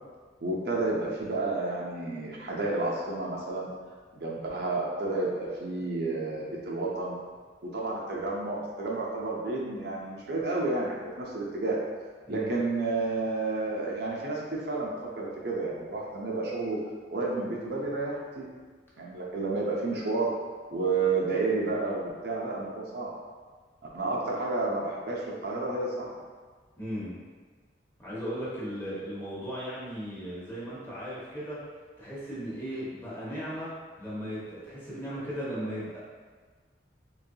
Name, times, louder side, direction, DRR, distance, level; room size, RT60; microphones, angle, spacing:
voice 1, 0.4-3.7 4.1-7.2 7.6-11.8 12.3-16.8 17.1-18.5 19.0-20.3 20.7-23.1 23.9-26.1, right 3 dB, 60° right, -4 dB, 0.6 m, -31 dB
voice 2, 12.2-12.5 26.8-27.2 28.0-31.6 32.0-33.7 34.0-36.0, equal, 10° left, -9 dB, 1.0 m, -36 dB
3.8 x 3.1 x 2.7 m, 1.5 s
head